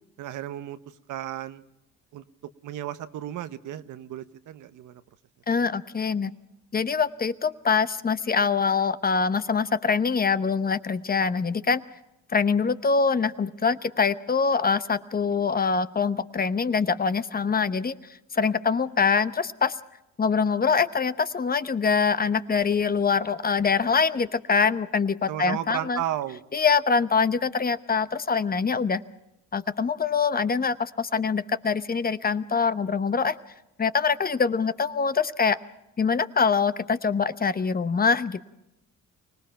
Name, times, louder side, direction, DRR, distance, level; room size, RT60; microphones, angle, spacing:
voice 1, 0.2-0.8 1.1-1.6 2.1-2.2 2.6-5.0 25.3-26.4, right 12 dB, 80° right, 12 dB, 1.1 m, -33 dB
voice 2, 5.5-6.3 6.7-11.8 12.3-18.0 18.3-19.8 20.2-26.0 26.5-29.0 29.5-33.3 33.8-35.6 36.0-38.4, left 5 dB, 30° left, 13 dB, 0.9 m, -24 dB
24.5 x 19.0 x 5.7 m, 0.91 s
cardioid pair, 90°, 30 cm